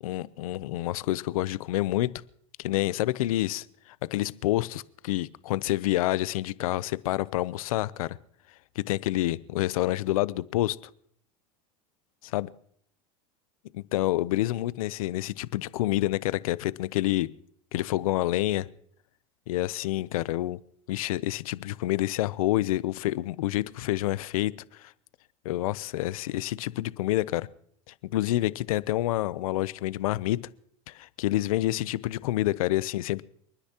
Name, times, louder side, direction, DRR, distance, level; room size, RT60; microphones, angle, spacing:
voice 1, 0.0-2.1 2.6-3.7 4.0-8.2 8.8-10.8 12.2-12.5 13.7-17.3 17.7-18.7 19.5-20.6 20.9-24.9 25.4-27.5 27.9-30.4 30.9-33.2, left 16 dB, 85° left, 18 dB, 0.6 m, -28 dB
29.5 x 10.0 x 2.9 m, 0.63 s
supercardioid pair, 110°, 18 cm